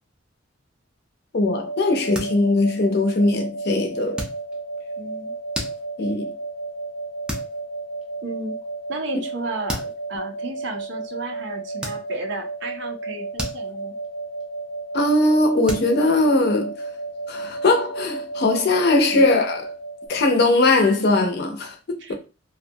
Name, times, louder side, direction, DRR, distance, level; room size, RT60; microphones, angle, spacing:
voice 1, 1.3-4.2 6.0-6.3 14.9-16.7 17.3-19.7 20.1-22.1, left 2 dB, 55° left, 0.5 m, -20 dB
sound 1, 1.4-20.1, right 3 dB, 90° right, 0.9 m, -33 dB
sound 2, 2.1-2.8 3.1-3.4 4.1-4.8 5.3-6.2 6.7-7.0 7.2-7.6 8.0-8.1 9.2-9.3 9.7-10.0 10.7-10.9 11.8-12.4 12.8-14.1 14.4-14.7 15.0-15.1 15.7-17.0, equal, 5° right, 0.4 m, -34 dB
voice 2, 5.0-5.3 8.2-8.5 8.9-13.9 19.1-19.2 22.0-22.1, right 2 dB, 65° right, 0.6 m, -33 dB
2.4 x 2.2 x 2.6 m
head